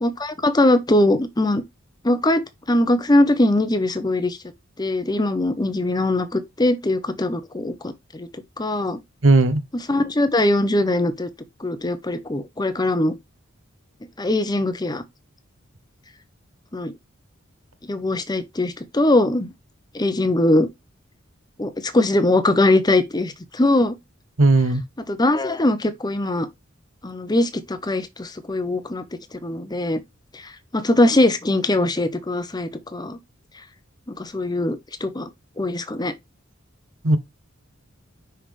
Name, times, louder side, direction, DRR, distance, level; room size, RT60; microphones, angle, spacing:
voice 1, 0.0-1.6 2.0-2.4 2.7-4.4 4.8-8.3 8.6-9.0 9.9-11.3 11.6-13.2 14.2-15.0 16.7-16.9 17.8-19.5 19.9-20.7 21.6-24.0 25.1-26.5 27.0-29.0 29.4-30.0 30.3-33.2 34.1-35.3 35.6-36.1, left 1 dB, 20° left, 0.8 m, -21 dB
voice 2, 9.2-9.6 24.4-24.8 37.0-37.2, right 2 dB, 70° right, 1.0 m, -16 dB
5.8 x 5.4 x 3.3 m
head